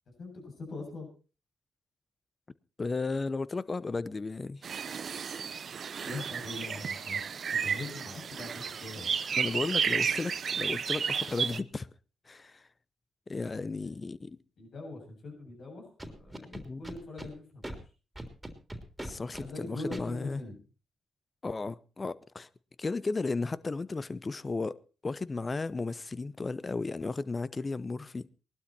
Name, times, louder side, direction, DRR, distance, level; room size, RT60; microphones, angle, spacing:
voice 1, 0.2-1.1 6.0-7.2 7.5-9.1 13.7-13.9 14.6-17.8 19.3-20.6, left 2 dB, 60° left, 7.4 m, -42 dB
voice 2, 2.8-4.6 9.3-11.9 12.3-12.7 13.3-14.4 16.5-16.8 19.0-20.4 21.4-22.5 22.8-28.3, left 3 dB, 35° left, 0.8 m, -34 dB
sound 1, 4.6-11.6, right 6 dB, 60° right, 0.8 m, -32 dB
Scratching (performance technique), 16.0-17.3 17.6-17.8 18.2-19.5 19.9-20.0, right 1 dB, 10° right, 3.4 m, -40 dB
19.5 x 12.0 x 4.3 m
supercardioid pair, 50°, 0 cm